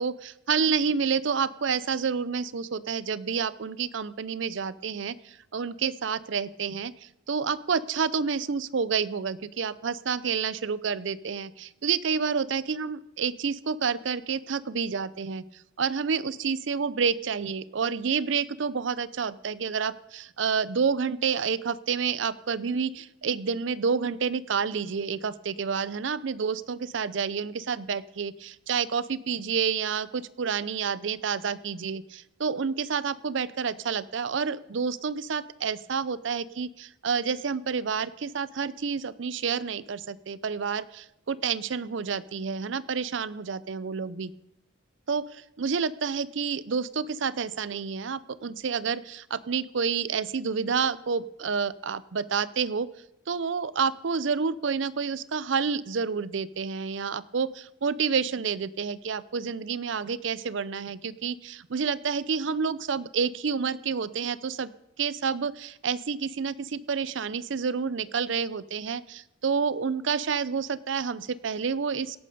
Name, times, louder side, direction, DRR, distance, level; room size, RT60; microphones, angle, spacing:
voice 1, 0.0-5.2 5.5-6.9 7.3-15.4 15.8-44.3 45.1-52.9 53.3-64.7 65.0-72.2, right 6 dB, 65° right, 18 dB, 0.5 m, -29 dB
17.5 x 8.4 x 5.4 m, 0.81 s
head